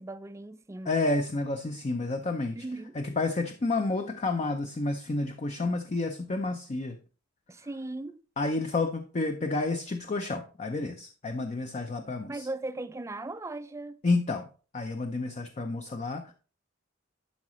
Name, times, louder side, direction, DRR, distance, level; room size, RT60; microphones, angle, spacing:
voice 1, 0.0-1.0 2.6-3.0 7.5-8.2 12.3-14.0, right 2 dB, 15° right, 0.4 m, -38 dB
voice 2, 0.9-2.6 2.9-7.0 8.4-12.5 14.0-14.5 14.7-16.3, left 3 dB, 35° left, 0.5 m, -30 dB
11.0 x 4.9 x 3.0 m
head